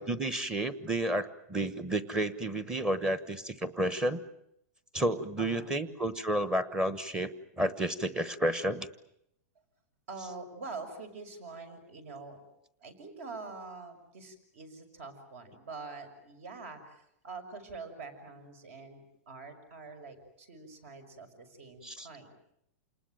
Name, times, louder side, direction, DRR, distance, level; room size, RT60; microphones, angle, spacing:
voice 1, 0.0-4.2 4.9-7.3 7.6-8.9 21.8-22.1, right 1 dB, 10° right, 14 dB, 1.0 m, -31 dB
voice 2, 5.4-6.0 10.1-12.4 12.8-22.3, right 4 dB, 60° right, 9 dB, 5.9 m, -45 dB
28.5 x 19.5 x 9.0 m, 0.78 s
supercardioid pair, 165°, 8 cm